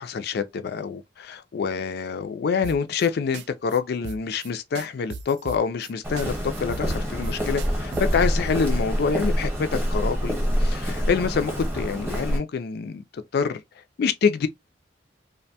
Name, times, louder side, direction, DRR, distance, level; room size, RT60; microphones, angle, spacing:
voice 1, 0.0-10.3 10.6-13.0 13.3-13.6 14.0-14.5, left 5 dB, 60° left, 0.4 m, -26 dB
sound 1, 2.6-3.1 3.3-3.5 3.7-3.8 4.0-4.5 4.7-5.9 6.2-6.3 6.5-8.2, right 5 dB, 70° right, 0.3 m, -37 dB
Walk footsteps, 6.0-12.4, equal, 15° right, 0.8 m, -26 dB
2.5 x 2.2 x 2.7 m
head